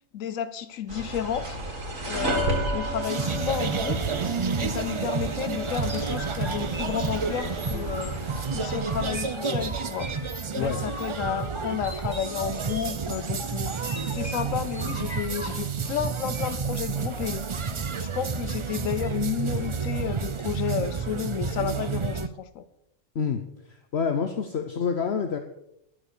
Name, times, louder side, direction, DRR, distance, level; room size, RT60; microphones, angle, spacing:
voice 1, 0.1-1.6 2.1-4.0 4.6-8.2 8.5-10.1 10.5-17.4 17.9-22.7, left 9 dB, 85° left, 13 dB, 1.1 m, -32 dB
sound 1, 0.9-9.1, right 2 dB, 90° right, 3.1 m, -32 dB
sound 2, 3.0-22.3, right 5 dB, 50° right, 0.3 m, -30 dB
sound 3, 5.9-15.5, right 1 dB, 20° right, 3.3 m, -40 dB
voice 2, 23.1-25.4, left 6 dB, 55° left, 7 dB, 1.1 m, -28 dB
12.0 x 8.7 x 6.8 m, 0.80 s
omnidirectional pair, 1.3 m